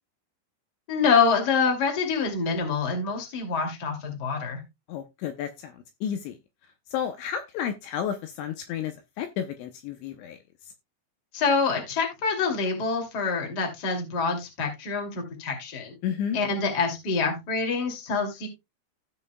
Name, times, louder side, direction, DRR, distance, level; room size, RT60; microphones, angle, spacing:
voice 1, 0.9-4.6 11.3-15.9 16.3-18.5, left 5 dB, 30° left, 1.9 m, -26 dB
voice 2, 4.9-5.7 6.0-6.4 6.9-10.4 16.0-16.4, left 8 dB, 80° left, 2.8 m, -31 dB
16.0 x 5.5 x 2.2 m
omnidirectional pair, 5.7 m